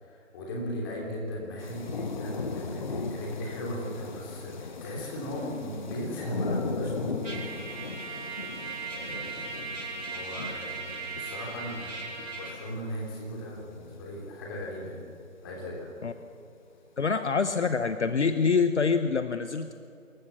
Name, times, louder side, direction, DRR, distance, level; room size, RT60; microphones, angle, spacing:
voice 1, 0.0-7.4 7.7-7.9 8.8-9.7 10.1-15.0 15.4-15.9, equal, 15° left, -1 dB, 3.1 m, -37 dB
sound 1, 1.6-14.5 14.9-15.0, left 3 dB, 35° left, 1.1 m, -38 dB
Trumpet, 7.2-12.6, right 4 dB, 65° right, 5.3 m, -38 dB
voice 2, 17.0-19.7, left 5 dB, 60° left, 10 dB, 0.9 m, -25 dB
25.5 x 14.5 x 7.3 m, 2.6 s
figure-of-eight pair, 160°, 40 cm